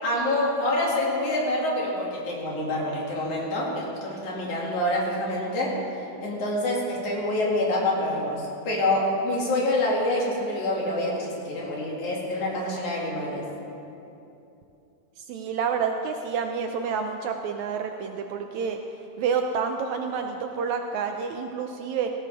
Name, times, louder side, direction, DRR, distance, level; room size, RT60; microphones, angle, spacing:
voice 1, 0.0-5.8 6.2-13.5, left 1 dB, 70° left, -4 dB, 3.9 m, -26 dB
voice 2, 15.2-18.8 19.2-22.1, right 6 dB, 75° right, 4 dB, 1.9 m, -29 dB
18.5 x 16.0 x 3.6 m, 2.8 s
omnidirectional pair, 3.6 m